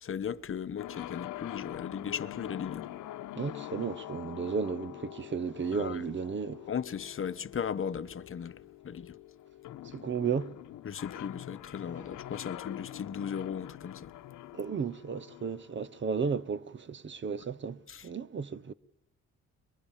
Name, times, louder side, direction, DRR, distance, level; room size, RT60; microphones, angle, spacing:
voice 1, 0.0-2.9 5.7-6.0 6.7-8.6 8.8-9.1 10.8-14.1 17.9-18.1, left 7 dB, 45° left, 1.1 m, -37 dB
sound 1, 0.8-16.5, left 14 dB, 80° left, 1.0 m, -45 dB
voice 2, 3.4-6.6 9.9-10.5 14.5-18.7, right 6 dB, 40° right, 1.0 m, -34 dB
29.5 x 23.0 x 7.4 m
cardioid pair, 90°, 30 cm